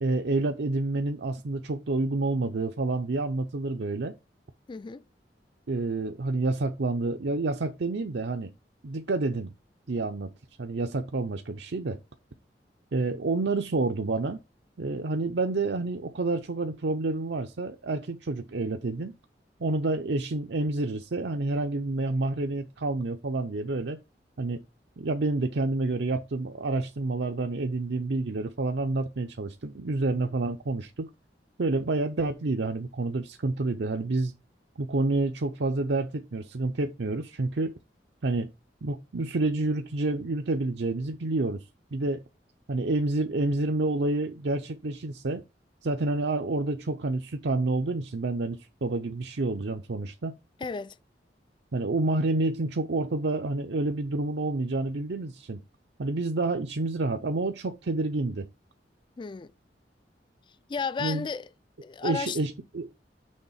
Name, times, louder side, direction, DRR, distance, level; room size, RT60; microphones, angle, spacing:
voice 1, 0.0-4.1 5.7-8.5 8.8-9.5 9.9-10.3 10.6-12.0 12.9-14.4 14.8-19.1 19.6-24.0 24.4-24.6 25.0-31.1 31.6-34.3 34.8-37.7 38.2-38.5 38.8-41.6 41.9-42.2 42.7-45.4 45.8-50.3 51.7-55.6 56.0-58.5 61.0-61.3 62.0-62.9, right 2 dB, 80° right, 0.6 m, -28 dB
voice 2, 4.7-5.0 50.6-51.0 59.2-59.5 60.7-61.5 61.8-62.4, left 5 dB, 25° left, 0.3 m, -33 dB
6.5 x 3.5 x 5.6 m
head